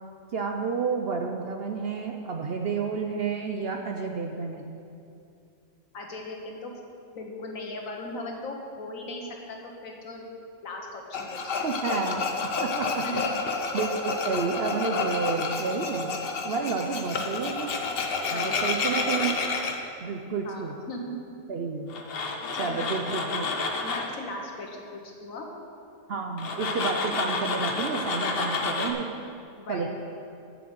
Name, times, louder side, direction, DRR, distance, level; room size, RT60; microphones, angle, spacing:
voice 1, 0.3-4.7 11.6-12.2 12.6-13.0 13.7-17.7 18.3-19.3 20.0-20.7 21.5-21.9 22.6-23.5 26.1-29.1 29.7-29.9, right 5 dB, 55° right, 3 dB, 0.7 m, -30 dB
voice 2, 5.9-6.7 7.2-10.3 10.6-11.4 13.0-13.3 18.3-18.6 20.4-21.2 22.5-22.9 23.8-25.5 29.6-29.9, left 2 dB, 70° left, 1 dB, 1.7 m, -38 dB
Tools, 11.1-19.7 21.9-24.2 26.4-28.9, left 4 dB, 50° left, 0.9 m, -30 dB
7.7 x 6.9 x 7.8 m, 2.6 s
omnidirectional pair, 1.5 m